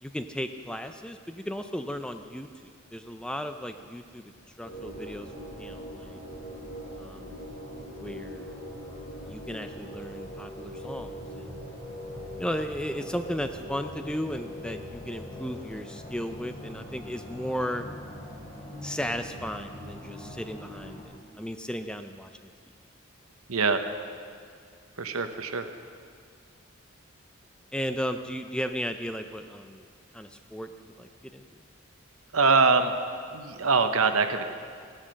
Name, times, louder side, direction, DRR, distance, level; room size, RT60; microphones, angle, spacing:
voice 1, 0.0-2.5 2.9-4.3 4.6-5.3 5.6-6.2 7.0-7.4 8.0-8.6 9.3-11.6 12.4-17.9 18.8-22.5 27.7-29.8 30.1-31.4, equal, 5° left, 7 dB, 0.4 m, -35 dB
sound 1, 4.6-21.0, equal, 45° left, 3.9 m, -41 dB
voice 2, 23.5-23.8 25.0-25.7 32.3-32.9 33.3-34.4, right 4 dB, 85° right, 8 dB, 1.0 m, -23 dB
15.5 x 11.0 x 6.4 m, 2.3 s
head